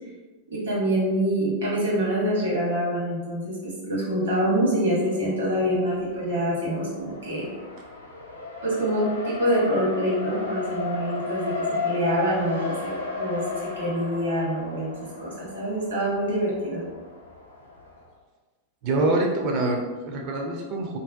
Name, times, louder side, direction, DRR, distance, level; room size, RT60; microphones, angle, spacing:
voice 1, 0.5-7.5 8.6-14.9 15.2-16.8, equal, 65° right, -5 dB, 0.9 m, -25 dB
Race car auto racing, 5.5-18.1, left 4 dB, 90° left, 0.4 m, -34 dB
voice 2, 18.8-21.0, right 2 dB, 40° right, 1 dB, 0.4 m, -25 dB
2.5 x 2.0 x 2.4 m, 1.3 s
figure-of-eight pair, 90°, 0 cm